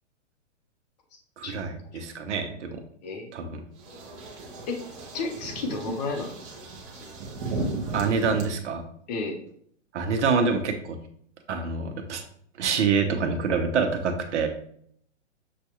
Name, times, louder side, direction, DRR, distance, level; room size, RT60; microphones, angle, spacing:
voice 1, 1.4-2.8 3.3-3.6 7.9-8.8 9.9-11.0 11.5-12.2 12.6-14.5, right 5 dB, 70° right, 5 dB, 0.9 m, -26 dB
sound 1, 3.8-8.4, right 2 dB, 25° right, 0.7 m, -35 dB
voice 2, 5.1-6.3 7.0-7.1 9.1-9.4, left 3 dB, 35° left, 3 dB, 0.8 m, -31 dB
6.7 x 2.3 x 3.0 m, 0.65 s
hypercardioid pair, 160°, 37 cm